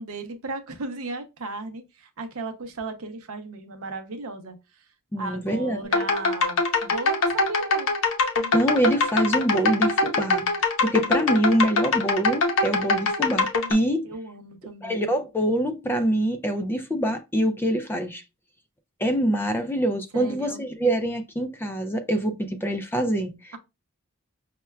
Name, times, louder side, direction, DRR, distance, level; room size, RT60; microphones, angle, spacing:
voice 1, 0.0-4.9 5.2-7.9 14.0-15.0 20.1-20.6, right 3 dB, 70° right, 0.6 m, -36 dB
voice 2, 5.1-5.8 8.5-10.5 10.8-14.1 14.8-18.2 19.0-23.5, right 1 dB, 10° left, 0.3 m, -25 dB
sound 1, 5.8-13.7, left 3 dB, 65° left, 0.7 m, -23 dB
5.6 x 2.2 x 2.2 m
head